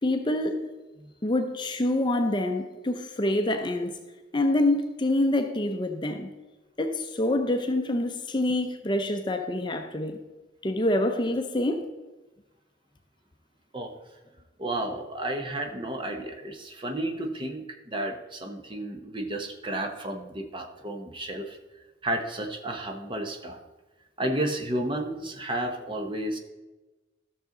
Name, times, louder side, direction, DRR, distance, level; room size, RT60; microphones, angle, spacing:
voice 1, 0.0-0.7 1.2-3.9 4.3-6.3 6.8-10.2 10.6-11.8, left 1 dB, 25° left, 0.6 m, -26 dB
voice 2, 14.6-21.6 22.0-23.6 24.2-26.4, right 1 dB, 25° right, 0.9 m, -32 dB
13.5 x 6.5 x 3.8 m
head